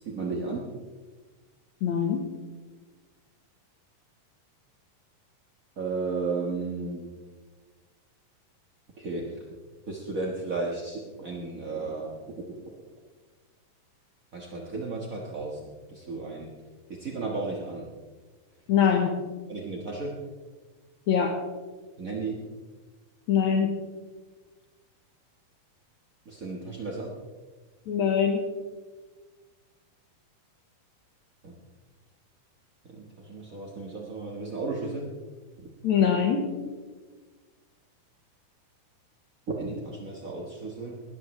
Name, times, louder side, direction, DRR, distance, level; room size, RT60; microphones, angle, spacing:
voice 1, 0.0-0.7 5.8-7.0 9.0-9.4 9.9-12.5 14.3-16.5 16.9-17.9 19.5-20.2 22.0-22.4 26.2-27.1 31.4-31.5 32.9-35.1 35.6-35.7 39.6-41.0, right 3 dB, 45° right, -2 dB, 1.1 m, -34 dB
voice 2, 1.8-2.2 18.7-19.1 21.1-21.4 23.3-23.7 27.9-28.4 35.8-36.4, left 7 dB, 65° left, 3 dB, 2.3 m, -23 dB
20.5 x 14.0 x 3.2 m, 1.4 s
omnidirectional pair, 3.9 m